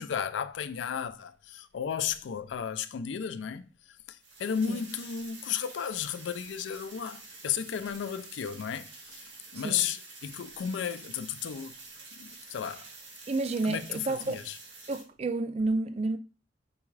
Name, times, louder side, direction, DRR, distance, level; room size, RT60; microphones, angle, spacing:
voice 1, 0.0-3.7 4.1-9.2 9.5-11.7 12.2-12.9 13.7-14.6, left 8 dB, 80° left, 0.4 m, -34 dB
sound 1, 4.2-15.0, right 3 dB, 70° right, 1.3 m, -48 dB
voice 2, 9.5-9.9 13.3-14.4 14.9-16.2, right 2 dB, 35° right, 0.3 m, -30 dB
4.6 x 3.5 x 3.2 m
head